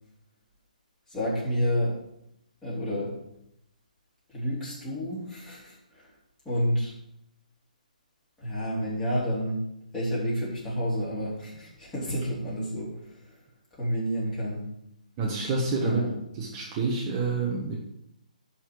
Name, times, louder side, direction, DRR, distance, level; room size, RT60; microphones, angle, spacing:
voice 1, 1.1-2.0 2.6-3.1 4.3-6.1 6.5-6.9 8.4-9.6 9.9-13.0 13.7-14.7 15.8-16.1, equal, 10° left, -8 dB, 3.8 m, -29 dB
voice 2, 15.2-16.0 16.3-17.8, right 4 dB, 30° right, -2 dB, 1.4 m, -28 dB
11.5 x 4.3 x 6.1 m, 0.79 s
figure-of-eight pair, 140°, 4 cm